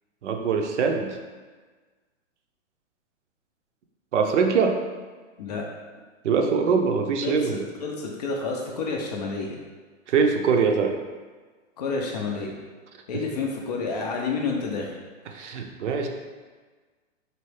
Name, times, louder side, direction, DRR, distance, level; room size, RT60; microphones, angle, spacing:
voice 1, 0.2-1.2 4.1-4.8 6.2-7.6 10.1-11.0 15.3-16.1, right 5 dB, 65° right, 4 dB, 0.6 m, -23 dB
voice 2, 7.2-9.6 11.8-12.5 13.1-14.9, left 4 dB, 35° left, 0 dB, 0.4 m, -29 dB
4.4 x 3.0 x 3.2 m, 1.4 s
hypercardioid pair, 145°, 39 cm